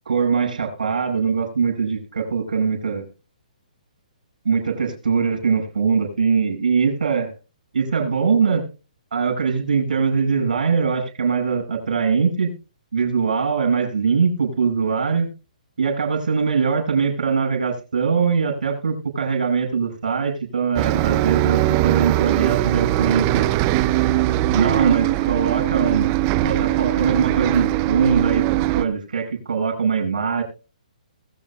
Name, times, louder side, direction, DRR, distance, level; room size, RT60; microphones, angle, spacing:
voice 1, 0.1-3.0 4.4-7.3 7.7-8.6 9.1-12.5 12.9-15.3 15.8-23.5 24.5-26.1 26.4-28.4 28.8-30.4, right 5 dB, 85° right, 4 dB, 5.4 m, -22 dB
Bus, 20.8-28.9, right 16 dB, 25° right, 0.4 m, -20 dB
21.0 x 7.3 x 2.3 m, 0.32 s
hypercardioid pair, 160°, 4 cm